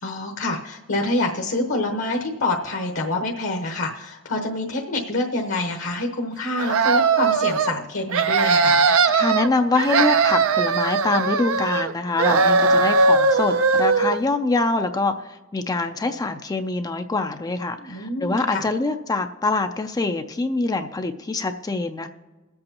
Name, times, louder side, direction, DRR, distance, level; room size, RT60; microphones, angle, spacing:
voice 1, 0.0-8.8 17.8-18.7, left 2 dB, 65° left, 0 dB, 1.0 m, -26 dB
sound 1, 6.6-7.7 8.1-9.5 9.8-11.9 12.2-14.2, right 4 dB, 75° right, 0.6 m, -19 dB
voice 2, 9.1-22.1, left 3 dB, 20° left, 7 dB, 0.4 m, -24 dB
22.0 x 7.8 x 2.8 m, 1.2 s
head